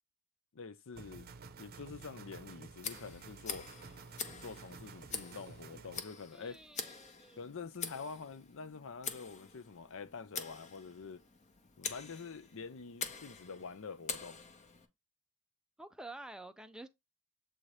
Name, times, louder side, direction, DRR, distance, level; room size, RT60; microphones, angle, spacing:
voice 1, 0.5-1.3 1.6-3.7 4.4-6.6 7.4-11.2 11.8-14.4, left 5 dB, 60° left, 0.6 m, -46 dB
sound 1, 0.9-6.0, right 4 dB, 45° right, 0.7 m, -52 dB
Tick, 2.8-14.9, left 5 dB, 35° left, 0.8 m, -45 dB
voice 2, 6.3-7.4 15.8-16.9, right 2 dB, 5° right, 0.4 m, -49 dB
7.7 x 2.8 x 4.8 m
head